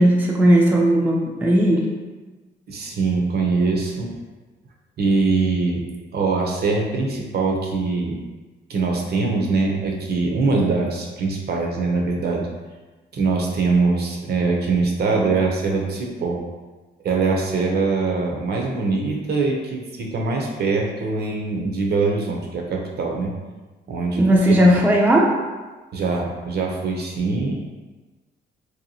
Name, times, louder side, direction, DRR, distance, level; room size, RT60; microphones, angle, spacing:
voice 1, 0.0-1.9 24.2-25.4, equal, 10° right, -2 dB, 0.4 m, -16 dB
voice 2, 2.7-4.1 5.0-5.8 6.1-8.2 8.7-12.5 13.1-16.4 17.0-23.3 23.9-24.2 24.5-24.8 25.9-27.5, right 3 dB, 55° right, 0 dB, 0.6 m, -22 dB
2.8 x 2.2 x 2.7 m, 1.3 s
cardioid pair, 90°, 20 cm